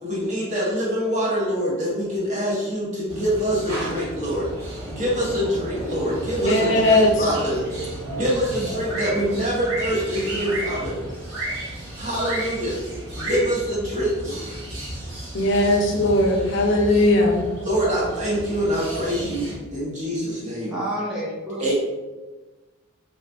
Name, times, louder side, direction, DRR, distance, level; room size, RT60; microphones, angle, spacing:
voice 1, 0.0-11.0 12.0-12.8 13.1-14.6 17.6-20.7 21.6-21.7, equal, 35° right, -7 dB, 1.0 m, -25 dB
sound 1, 3.1-19.6, right 1 dB, 65° right, 1.0 m, -33 dB
voice 2, 6.4-7.3 15.3-17.4 19.2-19.3, left 1 dB, 55° left, 1 dB, 0.5 m, -18 dB
voice 3, 20.7-21.7, right 1 dB, 5° right, -6 dB, 0.7 m, -29 dB
2.5 x 2.4 x 3.5 m, 1.2 s
head